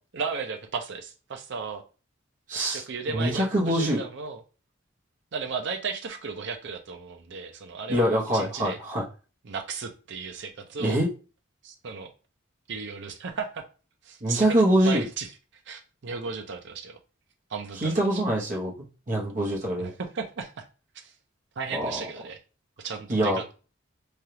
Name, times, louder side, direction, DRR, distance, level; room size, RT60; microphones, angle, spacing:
voice 1, 0.1-1.8 2.6-4.4 5.3-8.8 9.4-11.0 11.6-12.1 12.7-13.6 14.0-14.4 14.8-15.3 15.7-17.0 17.5-18.2 19.8-20.7 20.9-21.1 21.6-22.4 22.8-23.5, right 5 dB, 60° right, 5 dB, 0.5 m, -35 dB
voice 2, 2.5-2.8 3.1-4.0 7.9-9.0 10.8-11.1 14.2-15.0 17.8-18.7 19.1-19.9 21.7-22.0 23.1-23.4, right 1 dB, 40° right, -2 dB, 0.9 m, -24 dB
3.3 x 2.4 x 2.7 m, 0.34 s
head